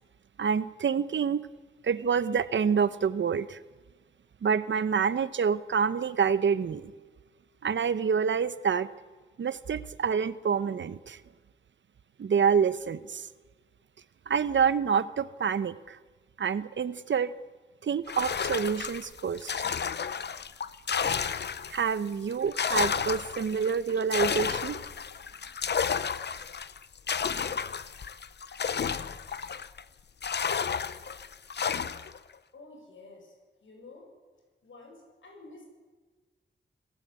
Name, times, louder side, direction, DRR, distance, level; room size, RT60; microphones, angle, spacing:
voice 1, 0.4-1.5 1.8-3.6 4.4-6.9 7.6-8.9 9.4-11.2 12.2-13.3 14.3-16.0 16.4-17.3 17.8-19.7 21.7-24.8, right 6 dB, 70° right, 15 dB, 0.9 m, -27 dB
sound 1, 18.1-21.9 22.3-29.8 30.2-32.2, left 6 dB, 60° left, 0.8 m, -32 dB
voice 2, 32.5-33.4 33.6-34.1 34.6-35.6, left 3 dB, 80° left, 2 dB, 7.5 m, -50 dB
27.0 x 17.0 x 8.4 m, 1.3 s
wide cardioid pair, 150°, 20 cm